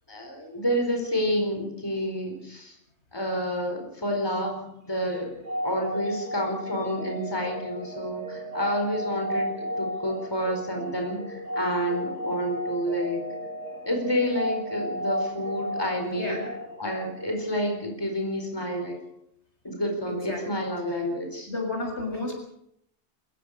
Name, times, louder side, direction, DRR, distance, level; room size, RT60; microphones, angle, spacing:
voice 1, 0.1-2.7 3.1-5.3 5.6-13.3 13.8-16.4 16.8-19.0 19.6-21.5, equal, 20° left, 2 dB, 4.7 m, -29 dB
sound 1, 5.1-17.8, equal, 90° right, 3.2 m, -34 dB
voice 2, 16.1-16.5 20.1-20.6 20.9-21.0 21.5-22.3, left 2 dB, 70° left, 2 dB, 6.7 m, -32 dB
27.5 x 16.0 x 6.6 m, 0.72 s
omnidirectional pair, 1.2 m